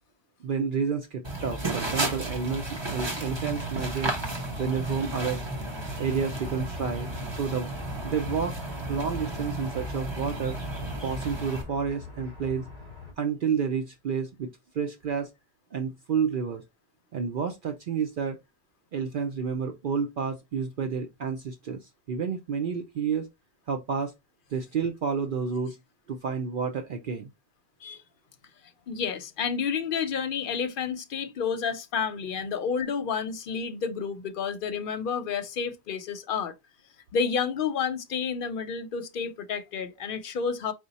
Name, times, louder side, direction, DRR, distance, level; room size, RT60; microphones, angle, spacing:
voice 1, 0.4-4.1 4.6-5.4 5.8-7.7 8.0-8.5 8.9-10.6 11.0-12.7 13.2-14.5 14.7-15.3 15.7-16.6 17.1-18.4 18.9-23.3 23.7-24.1 24.5-25.8 26.1-27.3, right 6 dB, 60° right, 0.7 m, -30 dB
sound 1, 1.2-11.6, right 2 dB, 25° right, 1.1 m, -33 dB
sound 2, 2.5-13.1, left 3 dB, 45° right, 2.2 m, -43 dB
voice 2, 28.9-36.5 37.1-40.7, left 6 dB, 60° left, 0.7 m, -30 dB
4.9 x 2.2 x 4.0 m
omnidirectional pair, 1.1 m